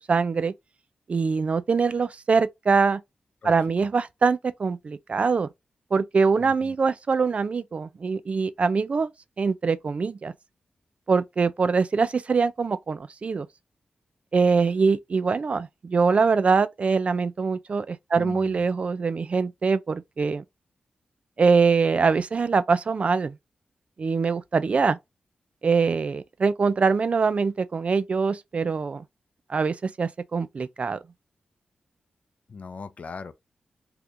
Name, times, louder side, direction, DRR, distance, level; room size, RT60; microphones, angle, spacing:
voice 1, 0.1-0.5 1.1-3.0 3.4-5.5 5.9-9.1 9.4-10.3 11.1-13.5 14.3-20.4 21.4-23.3 24.0-25.0 25.6-29.0 29.5-31.0, right 5 dB, 45° right, 0.3 m, -23 dB
voice 2, 6.4-6.8 18.2-18.6 32.5-33.3, left 5 dB, 55° left, 0.5 m, -39 dB
2.8 x 2.4 x 3.6 m
wide cardioid pair, 100°, 3 cm